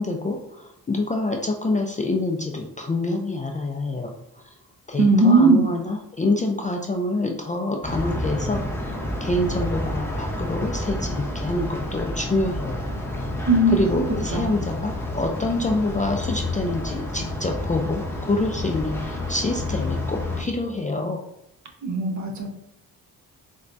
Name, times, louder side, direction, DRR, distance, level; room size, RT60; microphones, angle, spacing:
voice 1, 0.0-4.1 4.9-8.9 9.2-12.8 13.7-21.2, left 2 dB, 20° left, 1 dB, 0.3 m, -26 dB
voice 2, 5.0-5.7 13.5-13.8 14.3-14.5 21.8-22.5, right 2 dB, 45° right, 2 dB, 0.7 m, -18 dB
sound 1, 7.8-20.4, left 1 dB, 5° left, 0.7 m, -29 dB
4.3 x 2.2 x 2.5 m, 0.81 s
cardioid pair, 70°, 38 cm